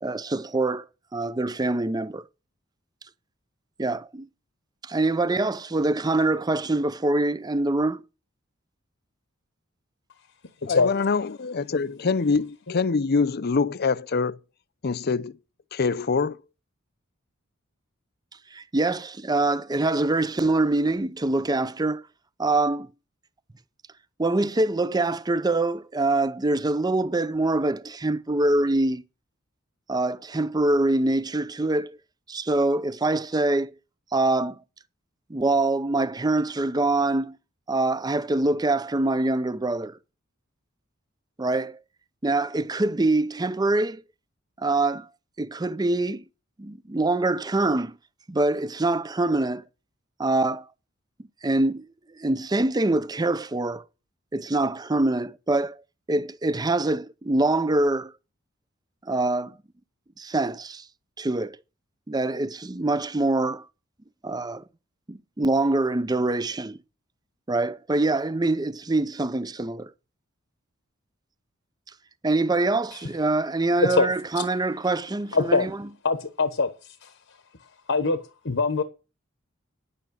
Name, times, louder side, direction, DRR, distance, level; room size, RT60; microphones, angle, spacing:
voice 1, 0.0-0.9 1.1-2.2 3.8-4.3 4.8-8.0 18.5-22.0 22.4-22.9 24.2-29.0 29.9-32.0 32.3-33.7 34.1-34.6 35.3-37.4 37.7-40.0 41.4-41.8 42.2-44.0 44.6-45.1 45.4-46.2 46.6-48.0 48.3-49.6 50.2-50.7 51.4-51.9 52.2-53.8 54.3-55.8 56.1-58.1 59.1-59.6 60.2-60.8 61.2-61.6 62.1-63.7 64.2-64.6 65.1-66.8 67.5-69.9 72.2-75.7, right 2 dB, 20° right, 0.6 m, -24 dB
voice 2, 10.6-14.4 14.8-15.4 15.7-16.4, left 4 dB, 50° left, 0.6 m, -24 dB
voice 3, 75.3-75.6 76.0-76.7 77.0-77.1 77.9-78.2 78.4-78.8, left 3 dB, 65° left, 1.1 m, -22 dB
10.5 x 8.4 x 6.4 m
head